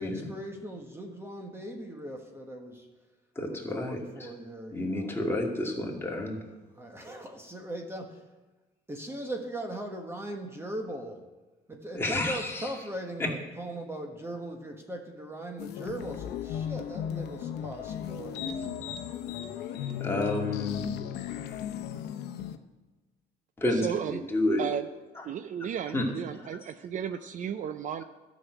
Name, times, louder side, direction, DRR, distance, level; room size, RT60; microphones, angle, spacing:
voice 1, 0.0-2.9 3.4-5.2 6.8-8.2 8.9-11.2 11.7-18.7, right 1 dB, 15° right, 3 dB, 1.3 m, -39 dB
voice 2, 3.4-4.0 4.7-6.4 11.9-12.7 13.2-13.3 20.0-20.9 23.6-23.9 24.3-24.6 25.9-26.0, left 1 dB, 15° left, -1 dB, 2.4 m, -29 dB
sound 1, 15.6-22.6, left 9 dB, 75° left, 0.8 m, -36 dB
voice 3, 23.7-24.2 24.6-24.9 25.2-28.0, right 8 dB, 50° right, 10 dB, 0.5 m, -34 dB
12.0 x 6.3 x 8.0 m, 1.2 s
cardioid pair, 110°, 17 cm